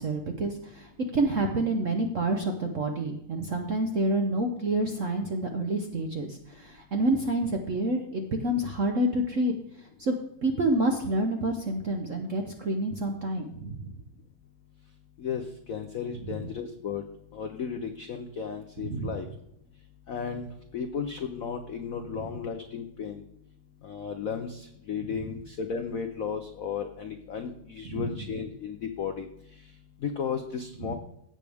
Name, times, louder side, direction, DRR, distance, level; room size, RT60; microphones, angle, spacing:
voice 1, 0.0-9.5 10.0-10.1 10.4-14.0 16.3-16.4 18.8-19.1 22.2-22.3 27.8-28.2 30.9-31.0, right 1 dB, 60° right, 3 dB, 0.8 m, -28 dB
voice 2, 15.7-17.0 17.3-19.3 20.1-20.5 20.7-23.2 23.8-29.3 30.0-30.9, left 6 dB, 90° left, 6 dB, 0.7 m, -34 dB
16.5 x 6.5 x 3.5 m, 0.78 s
omnidirectional pair, 2.4 m